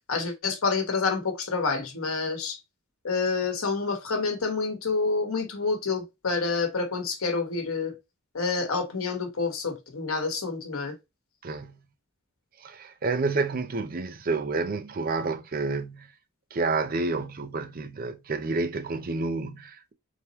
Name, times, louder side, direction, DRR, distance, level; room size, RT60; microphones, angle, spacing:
voice 1, 0.1-2.6 3.0-7.9 8.3-10.9, left 4 dB, 80° left, 1.0 m, -28 dB
voice 2, 11.4-11.8 12.6-16.1 16.5-19.9, right 3 dB, 40° right, 0.6 m, -29 dB
4.0 x 3.5 x 2.9 m
head